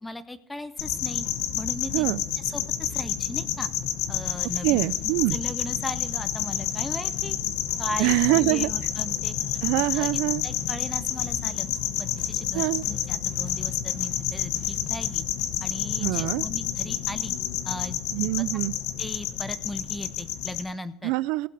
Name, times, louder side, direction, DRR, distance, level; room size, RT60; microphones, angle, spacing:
voice 1, 0.0-1.2 1.5-2.1 2.4-3.7 4.1-7.4 7.8-9.3 9.8-10.1 10.4-11.7 12.0-15.2 15.6-17.4 17.6-18.3 19.0-21.1, left 2 dB, 10° left, 13 dB, 0.6 m, -37 dB
sound 1, 0.8-20.6, left 10 dB, 65° left, 1.0 m, -29 dB
sound 2, 1.3-15.7, left 8 dB, 40° left, 1.1 m, -47 dB
voice 2, 4.6-5.4 8.0-8.7 9.6-10.4 12.5-12.8 16.0-16.4 18.1-18.7 21.0-21.5, right 20 dB, 70° right, 18 dB, 0.4 m, -24 dB
16.0 x 5.9 x 6.2 m, 0.76 s
cardioid pair, 145°, 0 cm